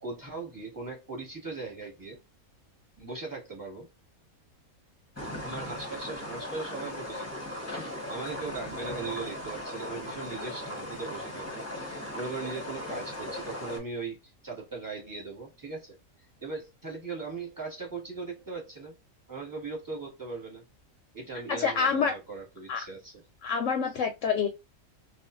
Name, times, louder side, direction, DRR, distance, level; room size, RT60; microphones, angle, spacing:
voice 1, 0.0-2.2 3.0-3.9 5.4-7.3 7.6-19.0 19.3-20.6 21.1-23.2, right 4 dB, 15° right, 1.2 m, -39 dB
sound 1, 5.2-13.8, left 1 dB, 15° left, 0.8 m, -38 dB
voice 2, 21.5-22.1 22.7-22.8 23.4-24.5, left 6 dB, 70° left, 0.8 m, -27 dB
2.5 x 2.4 x 2.4 m
omnidirectional pair, 1.5 m